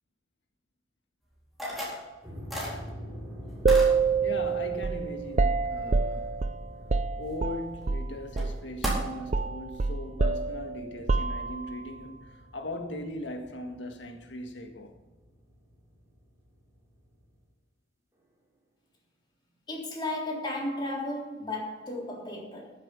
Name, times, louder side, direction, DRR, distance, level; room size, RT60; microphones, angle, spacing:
sound 1, 1.6-2.1 2.5-2.7 3.7-3.9 7.8-7.9 8.4-8.5 8.8-9.0, equal, ahead, 4.2 m, -33 dB
sound 2, 2.2-17.4, equal, 15° right, 3.2 m, -47 dB
sound 3, 3.6-8.1 8.4-8.6 8.8-11.8, right 4 dB, 40° right, 0.5 m, -27 dB
voice 1, 4.2-6.4 7.2-14.9, left 1 dB, 85° left, 1.8 m, -39 dB
voice 2, 19.7-22.7, left 1 dB, 25° left, 3.6 m, -34 dB
13.5 x 7.9 x 5.5 m
head